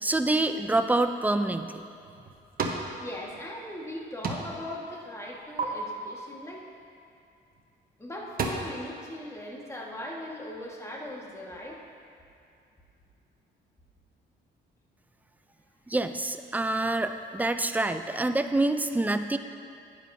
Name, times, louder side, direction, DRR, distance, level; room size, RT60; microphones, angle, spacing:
voice 1, 0.0-1.7 15.9-19.4, right 2 dB, 10° right, 8 dB, 0.4 m, -26 dB
sound 1, 1.8-2.9 3.3-4.0 4.2-4.7 5.0-5.6 7.5-7.6 8.0-8.5, right 4 dB, 50° right, 1.0 m, -33 dB
voice 2, 3.0-6.6 8.0-11.8, left 1 dB, 15° left, -2 dB, 1.5 m, -39 dB
11.5 x 9.6 x 2.7 m, 2.5 s
cardioid pair, 90°, 20 cm